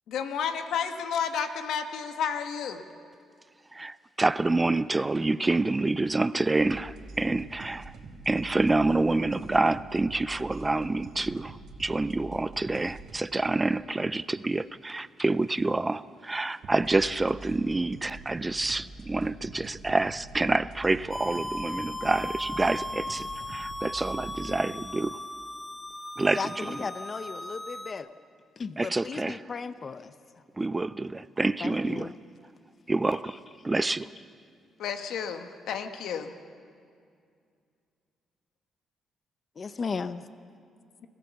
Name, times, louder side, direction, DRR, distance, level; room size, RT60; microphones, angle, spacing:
voice 1, 0.1-2.8 34.8-36.3, left 7 dB, 80° left, 7 dB, 1.3 m, -31 dB
voice 2, 3.7-7.9 8.3-25.2 26.2-26.9 28.8-29.4 30.6-32.1 32.9-34.1, right 2 dB, 20° right, 17 dB, 0.4 m, -27 dB
sound 1, 6.6-13.2 16.6-24.5, right 3 dB, 65° right, 2.3 m, -45 dB
sound 2, 21.1-27.9, left 1 dB, 10° left, 0.8 m, -37 dB
voice 3, 26.4-28.1 28.6-30.1 31.6-32.1 39.6-40.2, left 5 dB, 40° left, 12 dB, 0.7 m, -35 dB
26.0 x 15.5 x 7.1 m, 2.3 s
cardioid pair, 90°, 0 cm